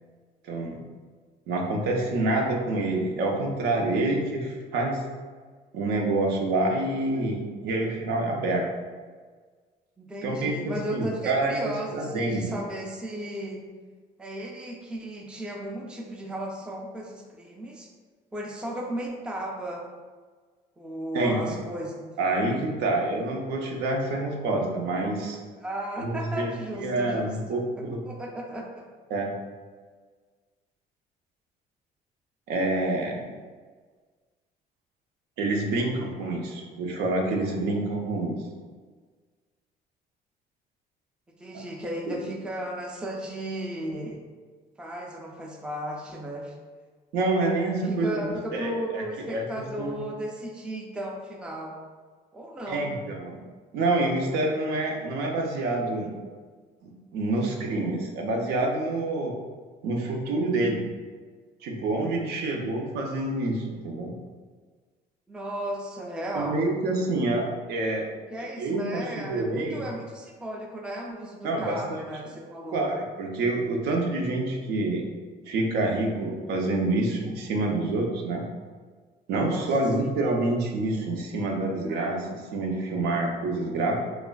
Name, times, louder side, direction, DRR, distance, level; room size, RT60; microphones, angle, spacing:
voice 1, 0.4-0.8 1.5-5.0 5.7-8.7 10.2-12.6 21.1-21.4 22.2-25.4 26.0-26.5 26.8-28.0 29.1-29.3 32.5-33.3 35.4-38.4 41.5-41.6 42.1-42.3 47.1-49.0 49.3-49.5 49.8-50.0 52.7-53.4 53.7-56.1 56.8-59.3 59.8-60.8 61.6-64.1 66.3-68.1 68.6-69.8 71.4-72.0 72.7-75.1 75.5-78.4 79.3-84.0, right 2 dB, 80° right, 1 dB, 0.5 m, -27 dB
voice 2, 10.0-13.6 14.2-17.9 18.3-19.8 20.8-22.1 25.6-27.6 28.0-28.7 41.4-44.2 44.8-46.5 47.8-51.8 52.3-53.0 65.3-66.7 68.3-72.9 79.3-79.7 80.0-80.1, right 1 dB, 5° right, -1 dB, 0.4 m, -35 dB
3.1 x 2.4 x 2.2 m, 1.5 s
cardioid pair, 110°, 17 cm